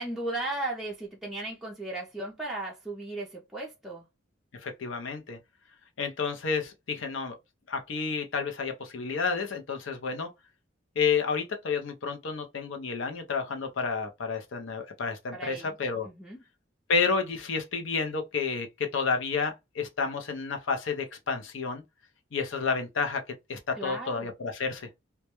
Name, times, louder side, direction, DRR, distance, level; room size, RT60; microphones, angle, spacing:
voice 1, 0.0-4.1 15.3-15.8 16.0-16.4 23.8-24.3, right 2 dB, ahead, 0.4 m, -36 dB
voice 2, 4.6-5.4 6.0-7.3 7.7-10.3 11.0-16.1 16.9-21.8 22.3-23.2 23.5-24.9, left 5 dB, 75° left, 0.5 m, -30 dB
2.2 x 2.1 x 2.9 m
head